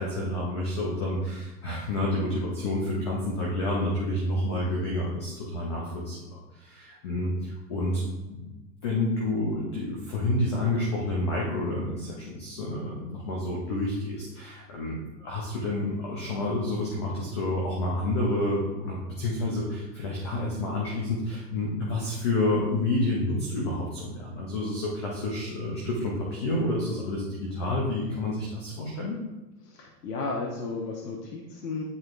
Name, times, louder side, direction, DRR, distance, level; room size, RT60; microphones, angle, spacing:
voice 1, 0.0-8.0 8.3-8.5 8.8-29.2, left 1 dB, 20° left, -3 dB, 0.5 m, -29 dB
voice 2, 29.6-31.8, left 3 dB, 70° left, -1 dB, 1.2 m, -34 dB
9.4 x 4.7 x 2.5 m, 1.1 s
hypercardioid pair, 150°, 49 cm